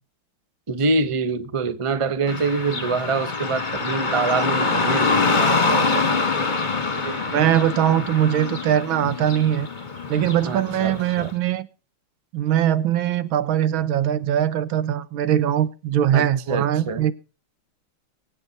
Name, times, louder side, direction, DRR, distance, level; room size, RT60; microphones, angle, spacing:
voice 1, 0.7-6.3 10.4-11.3 16.1-17.1, right 4 dB, 50° right, 0.3 m, -25 dB
Car passing by / Traffic noise roadway noise, 2.3-11.3, left 4 dB, 25° left, 1.5 m, -25 dB
voice 2, 7.0-9.7 10.1-11.7 12.3-17.1, right 11 dB, 75° right, 1.7 m, -21 dB
23.0 x 8.1 x 4.0 m
omnidirectional pair, 2.3 m